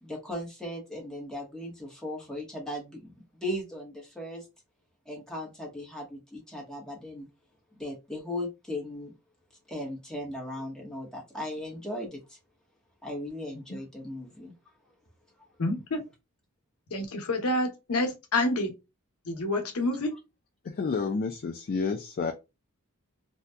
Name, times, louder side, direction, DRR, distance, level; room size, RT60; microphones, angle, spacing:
voice 1, 0.0-4.5 5.1-7.3 7.8-9.1 9.7-12.4 13.0-14.5, left 1 dB, 5° left, 0.9 m, -37 dB
voice 2, 15.6-16.0 16.9-18.7 19.3-20.1, left 2 dB, 75° left, 0.8 m, -28 dB
voice 3, 20.6-22.3, left 4 dB, 40° left, 0.3 m, -30 dB
2.7 x 2.2 x 3.3 m
head